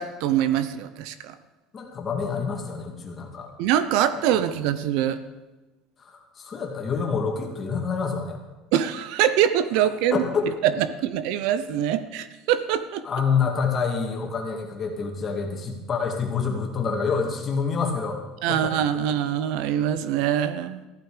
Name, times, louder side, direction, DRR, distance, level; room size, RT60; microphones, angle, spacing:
voice 1, 0.0-1.4 3.6-5.2 8.7-10.2 10.6-13.0 18.4-20.8, right 10 dB, 70° right, 13 dB, 0.8 m, -24 dB
voice 2, 1.7-3.5 6.0-8.4 10.1-10.5 13.0-18.2 18.5-18.6, left 5 dB, 25° left, 1 dB, 2.4 m, -27 dB
14.5 x 12.0 x 5.1 m, 1.1 s
cardioid pair, 155°, 0 cm